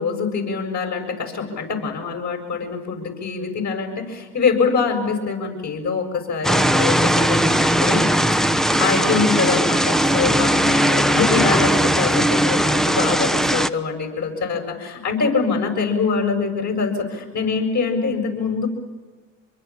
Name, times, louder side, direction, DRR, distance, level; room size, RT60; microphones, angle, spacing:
voice 1, 0.0-8.0 8.3-8.4 8.8-18.7, left 5 dB, 45° left, 4 dB, 7.3 m, -24 dB
sound 1, 6.4-13.7, equal, ahead, 0.8 m, -18 dB
25.5 x 23.0 x 7.4 m, 1.3 s
hypercardioid pair, 80°, 38 cm